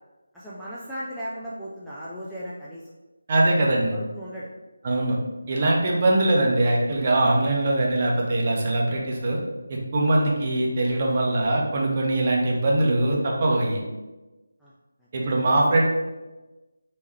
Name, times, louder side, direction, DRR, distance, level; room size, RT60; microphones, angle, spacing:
voice 1, 0.3-2.8 3.9-4.5 4.9-5.0 5.9-6.1 10.2-10.4 14.6-14.7, equal, ahead, -11 dB, 0.3 m, -36 dB
voice 2, 3.3-4.0 4.8-5.2 5.5-9.4 9.7-13.8 15.1-15.8, right 2 dB, 35° right, -2 dB, 0.7 m, -22 dB
3.5 x 3.1 x 3.1 m, 1.1 s
figure-of-eight pair, 160°, 0 cm